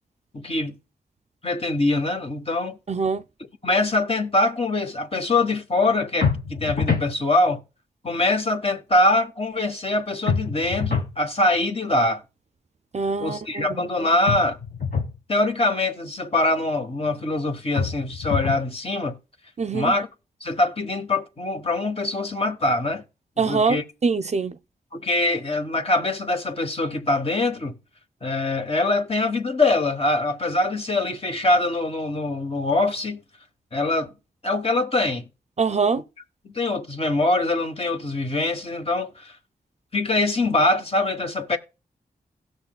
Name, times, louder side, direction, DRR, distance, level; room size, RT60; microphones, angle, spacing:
voice 1, 0.3-0.8 1.4-2.8 3.4-7.6 8.0-12.2 13.2-14.6 15.3-19.2 19.7-20.1 20.4-23.0 23.4-23.8 24.9-27.8 28.2-33.2 33.7-34.1 34.4-35.3 36.4-39.3 39.9-41.6, left 2 dB, 35° left, 1.2 m, -23 dB
voice 2, 2.9-3.2 12.9-13.6 19.6-19.9 23.4-23.8 24.0-24.5 35.6-36.0, right 5 dB, 40° right, 0.5 m, -23 dB
sound 1, 6.2-7.1 10.3-11.2 14.3-15.2 17.8-18.7, left 5 dB, 60° left, 1.8 m, -25 dB
17.0 x 6.4 x 2.3 m
cardioid pair, 45°, 17 cm